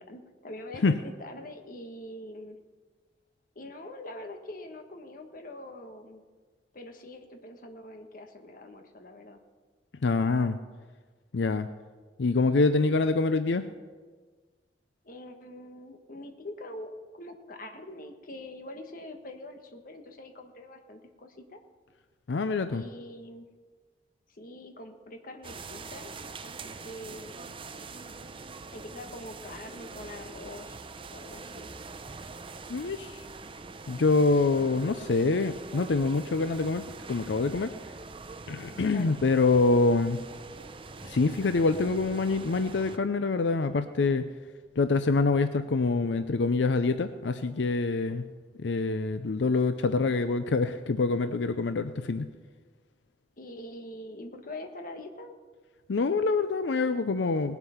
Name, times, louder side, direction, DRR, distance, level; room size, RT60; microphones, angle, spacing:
voice 1, 0.0-2.6 3.5-6.2 6.7-9.4 15.0-21.6 22.7-23.5 24.3-26.1 26.4-27.3 28.7-30.8 31.1-31.7 38.9-39.2 53.4-55.3, left 1 dB, 50° left, 5 dB, 1.4 m, -44 dB
voice 2, 10.0-10.6 11.3-11.7 12.2-13.6 22.3-22.8 32.7-33.2 33.9-36.8 37.1-37.7 38.5-40.2 41.0-44.3 44.8-48.2 48.6-52.3 55.9-57.6, left 3 dB, 85° left, 10 dB, 0.5 m, -25 dB
sound 1, 25.4-43.0, right 3 dB, 30° right, 0.6 m, -44 dB
19.0 x 8.1 x 5.7 m, 1.4 s
head